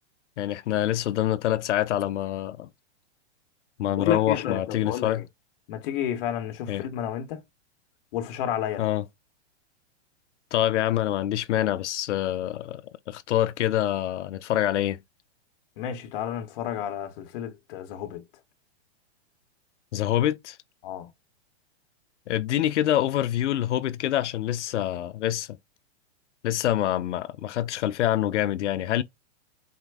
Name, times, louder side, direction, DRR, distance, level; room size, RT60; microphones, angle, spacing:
voice 1, 0.4-2.7 3.8-5.2 6.7-6.9 8.8-9.0 10.5-12.8 13.1-15.0 19.9-20.6 22.3-25.6 26.4-29.0, left 12 dB, 90° left, 0.5 m, -26 dB
voice 2, 3.9-5.2 5.7-7.4 8.1-8.8 15.8-18.2 20.8-21.1, left 10 dB, 50° left, 0.9 m, -31 dB
4.3 x 2.1 x 3.3 m
hypercardioid pair, 145°, 34 cm